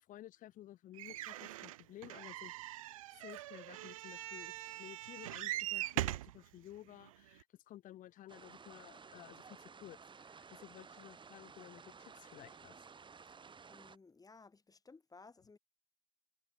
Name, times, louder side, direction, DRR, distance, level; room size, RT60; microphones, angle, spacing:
voice 1, 0.0-2.5 2.8-12.8, left 13 dB, 50° left, 1.0 m, -54 dB
sound 1, 1.0-6.4 7.1-7.2 7.4-7.5, right 16 dB, 70° right, 0.6 m, -41 dB
sound 2, 8.3-14.0, right 5 dB, 25° right, 1.6 m, -55 dB
voice 2, 13.7-15.6, left 4 dB, 20° left, 1.8 m, -59 dB
figure-of-eight pair, 55°, 18 cm